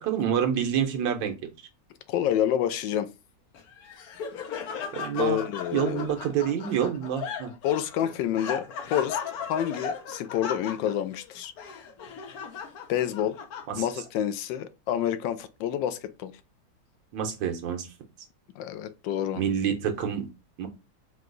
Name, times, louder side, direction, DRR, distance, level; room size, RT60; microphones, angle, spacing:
voice 1, 0.0-1.3 4.9-5.4 5.7-7.5 13.7-13.9 17.1-17.9 19.4-20.3 20.6-20.7, right 8 dB, 90° right, 1.5 m, -27 dB
voice 2, 2.1-3.1 5.1-6.1 7.6-8.6 8.9-9.2 9.5-11.5 12.9-13.4 13.8-16.3 18.6-19.4, left 10 dB, 80° left, 1.2 m, -28 dB
Laughter, 3.5-14.1, left 6 dB, 65° left, 1.1 m, -37 dB
4.7 x 2.2 x 3.8 m
omnidirectional pair, 2.0 m